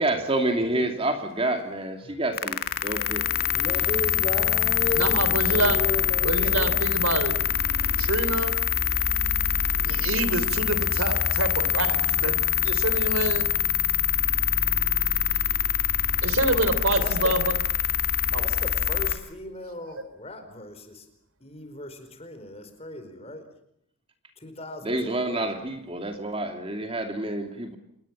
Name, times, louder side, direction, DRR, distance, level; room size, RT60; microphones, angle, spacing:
voice 1, 0.0-3.3 24.8-27.8, right 2 dB, 25° right, 6 dB, 2.6 m, -28 dB
sound 1, 2.3-19.2, left 9 dB, 45° left, 2.3 m, -24 dB
voice 2, 3.5-6.7 17.0-17.3 18.3-21.0 21.4-23.4 24.4-25.5, left 1 dB, 30° left, 8 dB, 4.7 m, -36 dB
voice 3, 4.9-5.8 6.2-7.3 8.0-8.5 9.8-12.4 12.6-13.6 16.2-17.5 18.2-18.4, right 2 dB, 70° right, 13 dB, 3.3 m, -27 dB
27.5 x 21.5 x 7.4 m, 0.75 s
head